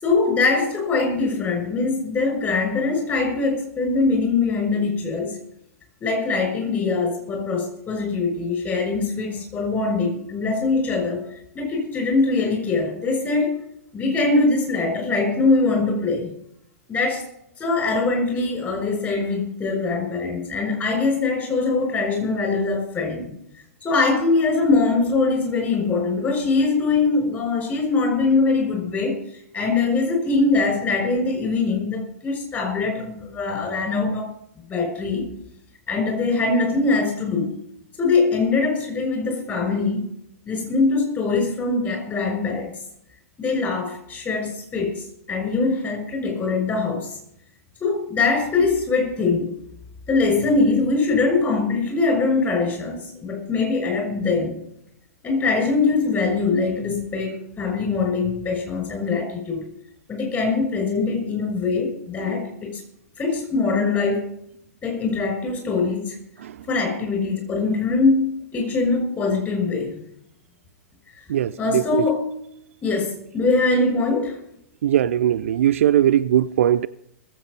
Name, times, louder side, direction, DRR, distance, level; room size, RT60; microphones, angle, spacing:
voice 1, 0.0-5.4 6.0-11.3 11.5-13.5 13.9-16.3 16.9-17.2 17.6-23.3 23.8-29.2 29.5-34.3 34.7-35.3 35.9-37.6 38.0-40.1 40.5-42.7 43.4-47.2 47.8-49.5 50.1-54.5 55.2-59.7 60.1-62.8 63.2-64.3 64.8-66.2 66.7-70.0 71.6-72.3 72.8-74.4, left 3 dB, 25° left, 6.3 m, -22 dB
voice 2, 74.8-76.9, right 11 dB, 60° right, 0.5 m, -19 dB
20.0 x 8.0 x 5.4 m
figure-of-eight pair, 105°, 8 cm